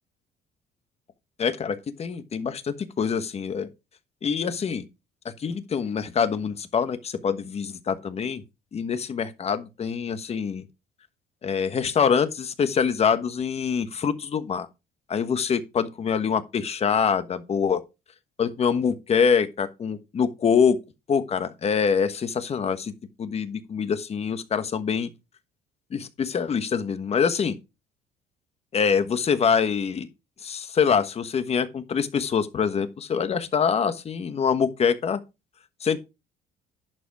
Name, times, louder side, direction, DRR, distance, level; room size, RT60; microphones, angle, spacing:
voice 1, 1.4-3.7 4.2-4.8 5.4-8.4 8.7-10.6 11.4-14.7 15.1-17.8 18.4-20.8 21.1-22.9 23.2-25.1 25.9-27.6 28.7-30.1 30.4-35.2 35.8-36.0, left 6 dB, 40° left, 1.3 m, -25 dB
11.0 x 5.1 x 4.8 m
cardioid pair, 110°, 17 cm